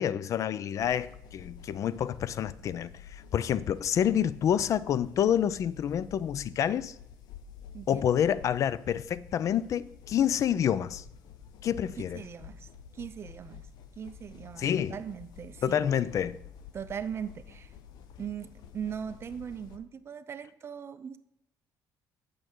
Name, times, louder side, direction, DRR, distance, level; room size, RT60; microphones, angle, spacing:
voice 1, 0.0-7.0 7.9-11.0 11.6-12.2 14.6-15.0 15.6-16.4, left 9 dB, 50° left, 0.4 m, -28 dB
sound 1, 0.8-19.8, left 7 dB, 75° left, 0.7 m, -50 dB
voice 2, 7.7-8.0 12.0-13.6 14.0-15.8 16.7-17.7 18.2-21.2, right 8 dB, 35° right, 0.5 m, -40 dB
8.5 x 6.6 x 4.5 m
cardioid pair, 125°, 7 cm